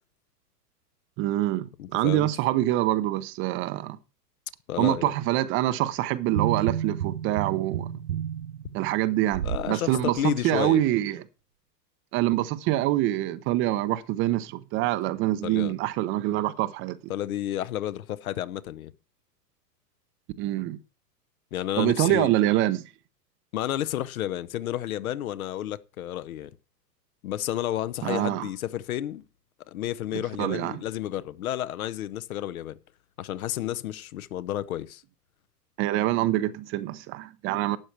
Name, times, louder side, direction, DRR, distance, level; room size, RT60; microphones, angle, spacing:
voice 1, 1.2-4.0 4.8-7.9 8.7-11.2 12.1-17.0 20.4-20.8 21.8-22.8 28.0-28.5 30.1-30.8 35.8-37.8, right 15 dB, 25° right, 0.6 m, -25 dB
voice 2, 1.8-2.3 4.7-5.1 9.4-10.8 15.4-15.7 17.1-18.9 21.5-22.3 23.5-26.5 27.2-29.2 29.7-32.7 33.2-35.0, left 12 dB, 60° left, 0.9 m, -31 dB
sound 1, 6.3-9.7 10.2-10.3, right 10 dB, 85° right, 0.6 m, -31 dB
12.0 x 8.9 x 4.5 m
figure-of-eight pair, 100°, 49 cm